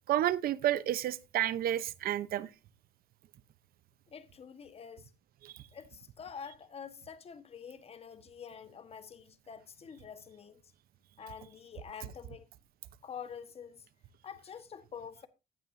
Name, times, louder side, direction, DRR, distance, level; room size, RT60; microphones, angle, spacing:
voice 1, 0.1-2.5 5.4-5.5, right 12 dB, 60° right, 0.8 m, -30 dB
voice 2, 4.1-5.1 5.7-10.6 11.2-12.5 13.0-13.9 14.2-15.3, left 7 dB, 35° left, 1.3 m, -47 dB
15.0 x 9.1 x 2.6 m
cardioid pair, 110°, 17 cm